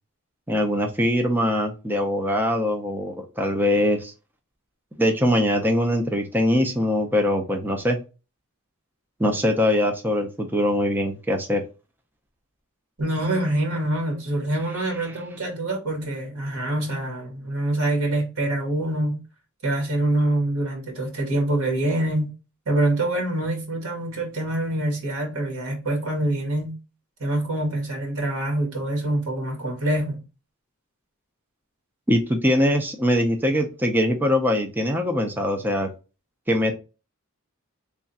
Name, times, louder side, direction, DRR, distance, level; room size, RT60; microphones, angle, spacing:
voice 1, 0.5-4.1 5.0-8.0 9.2-11.6 32.1-35.9 36.5-36.7, left 1 dB, 10° right, 0.5 m, -22 dB
voice 2, 13.0-19.2 19.6-22.3 22.6-26.8 27.2-30.2, right 1 dB, 65° right, 1.5 m, -25 dB
3.4 x 2.4 x 4.0 m
head